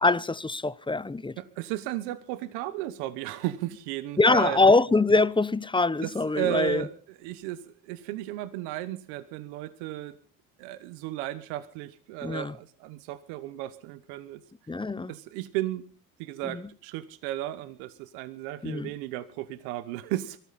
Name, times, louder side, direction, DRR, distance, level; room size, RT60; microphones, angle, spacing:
voice 1, 0.0-1.4 4.2-6.8 12.2-12.5 14.7-15.1 16.4-16.7 18.6-18.9, left 3 dB, 10° left, 0.7 m, -23 dB
voice 2, 1.4-4.6 6.0-10.2 10.6-14.4 15.1-15.9 16.2-20.4, right 14 dB, 85° right, 1.1 m, -34 dB
23.0 x 14.0 x 4.2 m
supercardioid pair, 80°, 43 cm